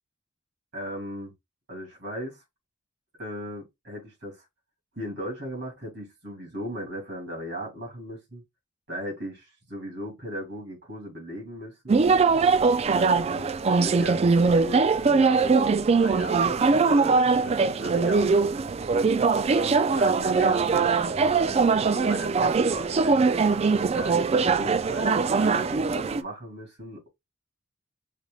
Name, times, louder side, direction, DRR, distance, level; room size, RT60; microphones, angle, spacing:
voice 1, 0.7-1.3 1.7-2.4 3.2-4.4 4.9-8.4 8.9-12.0 12.9-13.5 13.8-18.3 18.9-23.2 23.9-27.1, equal, 60° right, 3.0 m, -37 dB
sound 1, 11.9-26.2, right 4 dB, 30° right, 0.3 m, -22 dB
6.6 x 3.1 x 2.3 m
head